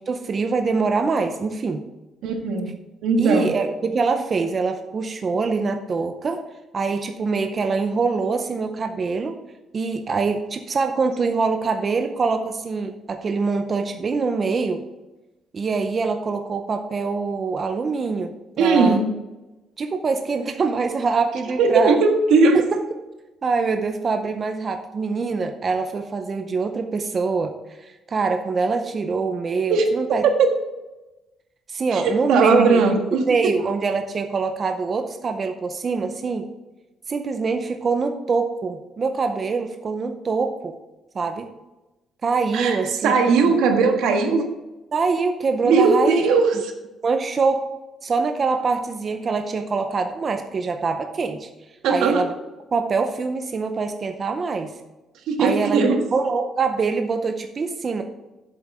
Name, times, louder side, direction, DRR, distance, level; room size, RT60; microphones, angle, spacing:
voice 1, 0.1-1.8 3.2-6.4 6.7-9.3 9.7-14.8 15.5-18.3 18.6-19.0 19.8-22.0 22.5-22.9 23.4-30.2 31.7-32.8 33.1-36.5 37.1-40.8 41.1-41.5 42.2-43.1 43.4-43.6 44.9-46.2 47.0-47.7 48.0-51.5 51.9-52.3 52.7-54.7 55.4-58.0, right 4 dB, 30° right, 7 dB, 0.6 m, -24 dB
voice 2, 2.2-2.7 3.0-3.5 18.6-19.0 21.6-22.6 29.7-30.5 31.9-33.5 42.5-44.4 45.6-46.6 51.8-52.3 55.3-56.0, right 4 dB, 90° right, 4 dB, 1.4 m, -19 dB
7.7 x 7.6 x 4.7 m, 1.0 s
cardioid pair, 165°, 0 cm